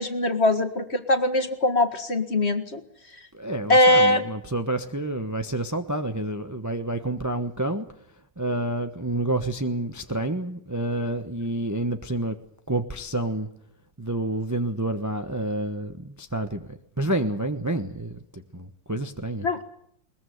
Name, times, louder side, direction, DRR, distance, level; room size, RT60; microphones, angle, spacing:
voice 1, 0.0-2.8 3.7-4.2 19.4-19.6, left 1 dB, 35° left, 7 dB, 2.1 m, -21 dB
voice 2, 3.3-7.9 8.4-12.4 12.7-13.5 14.0-19.5, right 1 dB, 10° right, 6 dB, 1.0 m, -29 dB
21.5 x 21.0 x 9.5 m, 0.70 s
omnidirectional pair, 1.9 m